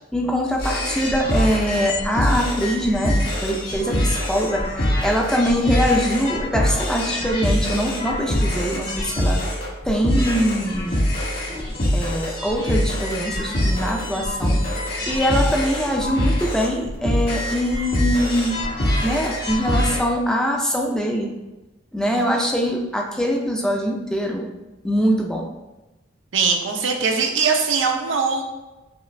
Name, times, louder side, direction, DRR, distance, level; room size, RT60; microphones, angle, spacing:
voice 1, 0.1-9.4 9.8-11.0 11.9-14.6 15.1-18.6 19.0-21.3 21.9-24.5 24.8-25.5, equal, 5° left, 0 dB, 0.4 m, -23 dB
sound 1, 0.6-20.0, left 1 dB, 55° left, 1.4 m, -24 dB
voice 2, 26.3-28.4, right 5 dB, 85° right, 2 dB, 0.7 m, -21 dB
5.6 x 2.4 x 3.3 m, 1.1 s
head